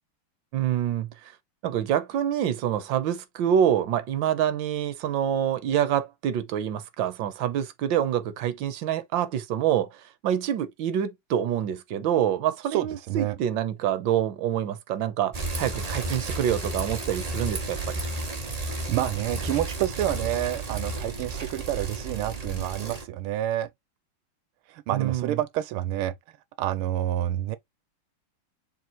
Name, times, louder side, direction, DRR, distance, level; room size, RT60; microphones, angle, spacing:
voice 1, 0.5-1.3 1.6-18.0 24.9-25.4, right 10 dB, 65° right, 1.7 m, -26 dB
voice 2, 12.7-13.4 18.6-23.7 24.7-26.1 26.6-27.6, right 13 dB, 90° right, 1.5 m, -28 dB
Bicycle, 15.3-23.1, right 2 dB, 25° right, 0.9 m, -32 dB
6.8 x 4.5 x 3.1 m
omnidirectional pair, 2.3 m